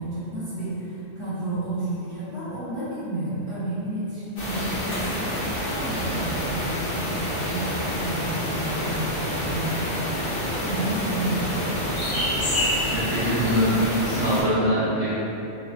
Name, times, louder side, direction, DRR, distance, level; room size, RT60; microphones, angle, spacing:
voice 1, 0.0-5.4 5.7-10.0 10.6-12.3, right 2 dB, 25° right, -14 dB, 1.1 m, -31 dB
sound 1, 4.4-14.4, left 1 dB, 90° left, 1.5 m, -27 dB
voice 2, 12.9-13.8 14.0-15.1, equal, 50° right, -13 dB, 1.4 m, -23 dB
3.3 x 2.3 x 3.2 m, 2.9 s
omnidirectional pair, 1.3 m